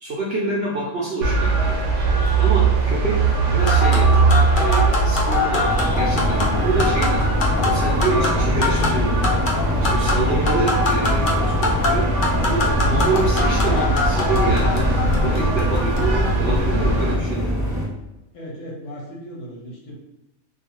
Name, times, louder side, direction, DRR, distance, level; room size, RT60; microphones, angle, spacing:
voice 1, 0.0-1.8 2.4-5.6 5.9-9.4 9.8-12.1 12.4-17.5, right 3 dB, 65° right, -4 dB, 0.6 m, -27 dB
sound 1, 1.2-17.2, right 3 dB, 80° right, 1.0 m, -21 dB
sound 2, 3.6-16.3, left 3 dB, 85° left, 0.4 m, -25 dB
sound 3, 5.6-17.9, left 1 dB, 10° left, 1.0 m, -24 dB
voice 2, 18.3-20.0, equal, 65° left, -2 dB, 0.8 m, -36 dB
2.4 x 2.3 x 2.9 m, 0.95 s
omnidirectional pair, 1.5 m